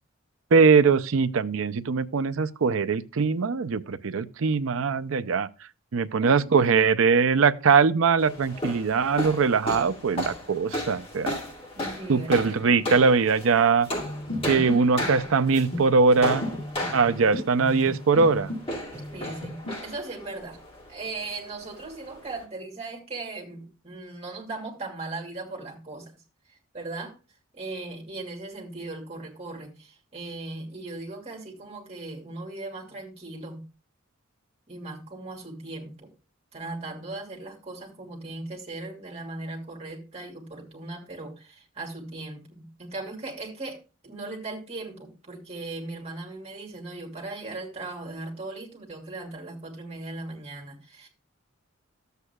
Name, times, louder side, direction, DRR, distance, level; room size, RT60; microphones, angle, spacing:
voice 1, 0.5-5.5 5.9-11.4 12.1-13.9 14.5-16.5 16.9-18.5, right 5 dB, 70° right, 0.5 m, -21 dB
voice 2, 6.2-6.6 11.7-12.9 19.1-20.6 20.9-26.1 26.5-27.1 27.5-33.6 34.7-36.1 36.5-51.1, right 2 dB, 30° right, 2.6 m, -38 dB
sound 1, 8.2-22.4, left 1 dB, 25° left, 2.4 m, -35 dB
sound 2, 13.9-18.6 18.9-19.7, left 1 dB, 60° left, 5.2 m, -35 dB
13.0 x 8.1 x 2.3 m
head